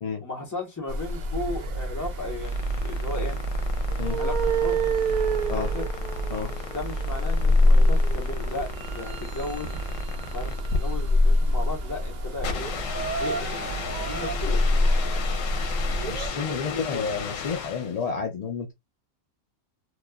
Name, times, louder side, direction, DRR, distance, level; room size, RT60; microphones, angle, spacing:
voice 1, 0.2-3.4 4.2-4.9 5.4-5.9 6.7-9.8 10.3-10.5 10.8-12.7 13.2-13.8 14.1-14.9 16.3-17.0, left 2 dB, 15° left, 0.9 m, -35 dB
sound 1, 0.9-16.3, equal, 80° right, 0.4 m, -25 dB
sound 2, 2.1-18.0, left 6 dB, 75° left, 1.0 m, -36 dB
voice 2, 16.0-18.7, left 5 dB, 60° left, 0.4 m, -31 dB
3.0 x 2.3 x 2.2 m
omnidirectional pair, 1.3 m